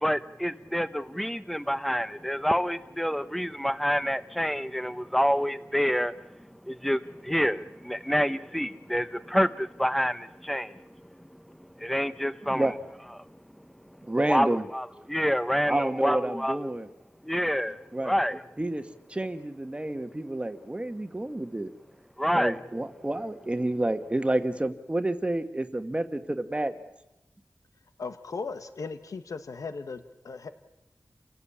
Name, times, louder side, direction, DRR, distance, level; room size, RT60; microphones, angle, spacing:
voice 1, 0.0-10.8 11.8-12.7 14.3-16.7 17.2-18.4 22.2-22.6, equal, 5° left, 12 dB, 0.9 m, -28 dB
voice 2, 12.4-12.7 14.0-14.7 15.7-16.9 17.9-18.1 18.6-18.8 19.1-21.7 22.3-26.7, right 1 dB, 20° right, 8 dB, 1.4 m, -29 dB
voice 3, 28.0-30.5, left 4 dB, 80° left, 9 dB, 1.4 m, -37 dB
29.0 x 17.0 x 8.6 m, 0.93 s
wide cardioid pair, 105°, 6 cm